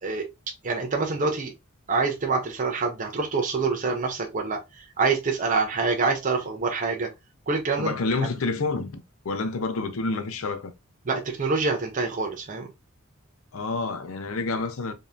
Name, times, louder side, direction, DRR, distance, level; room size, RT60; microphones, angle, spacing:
voice 1, 0.6-1.5 1.9-7.1 7.5-7.9 8.2-8.3 11.0-12.7, right 4 dB, 40° right, 0.6 m, -26 dB
voice 2, 7.8-10.7 13.5-14.9, left 3 dB, 70° left, 0.6 m, -28 dB
5.1 x 2.8 x 2.4 m
head